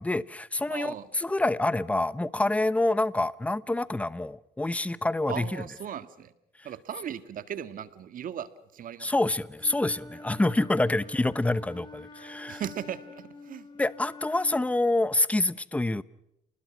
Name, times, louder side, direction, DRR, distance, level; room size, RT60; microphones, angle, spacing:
voice 1, 0.0-5.8 9.0-12.7 13.8-16.0, left 2 dB, 10° left, 0.9 m, -27 dB
voice 2, 0.7-1.1 5.3-6.3 6.6-8.5 8.7-9.1 12.5-13.7, right 9 dB, 55° right, 1.9 m, -37 dB
Wind instrument woodwind instrument, 9.6-14.7, left 2 dB, 25° left, 5.0 m, -47 dB
30.0 x 20.5 x 6.2 m
cardioid pair, 110°, 17 cm